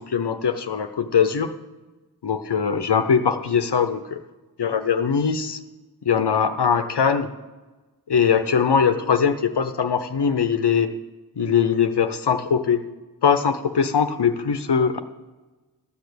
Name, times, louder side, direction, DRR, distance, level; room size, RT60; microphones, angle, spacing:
voice 1, 0.0-1.5 2.2-4.2 4.6-5.6 6.0-7.3 8.1-10.9 11.4-12.8 13.2-15.0, left 6 dB, 80° left, 9 dB, 0.7 m, -21 dB
13.0 x 6.6 x 8.3 m, 1.2 s
wide cardioid pair, 50°, 40 cm